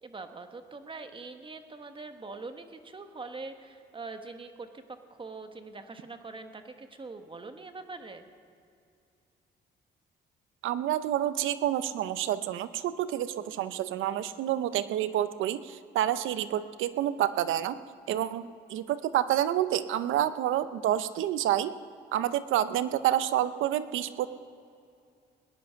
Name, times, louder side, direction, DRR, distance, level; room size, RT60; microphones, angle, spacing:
voice 1, 0.0-8.2, right 3 dB, 25° right, 7 dB, 1.3 m, -43 dB
voice 2, 10.6-17.8 18.1-21.7 22.1-24.3, right 12 dB, 85° right, 13 dB, 0.7 m, -28 dB
19.5 x 10.5 x 5.7 m, 2.5 s
cardioid pair, 90°, 20 cm